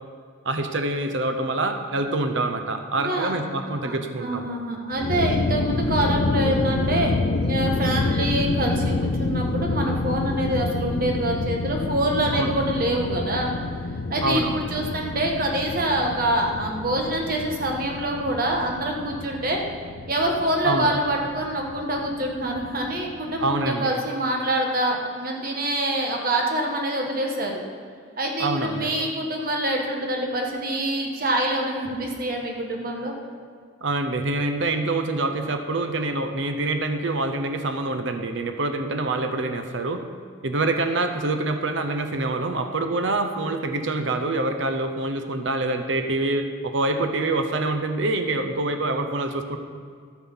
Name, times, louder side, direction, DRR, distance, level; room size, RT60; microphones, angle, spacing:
voice 1, 0.4-4.5 12.3-12.5 14.2-14.6 20.6-20.9 23.4-23.9 28.4-28.9 33.8-40.0 40.4-49.6, right 2 dB, 65° right, 7 dB, 0.7 m, -26 dB
voice 2, 3.0-3.4 3.8-13.5 14.1-19.6 20.1-27.6 28.2-33.1, right 1 dB, 45° right, 1 dB, 1.5 m, -25 dB
sound 1, 4.9-23.7, left 3 dB, 45° left, 0.4 m, -28 dB
13.5 x 6.3 x 5.6 m, 2.1 s
head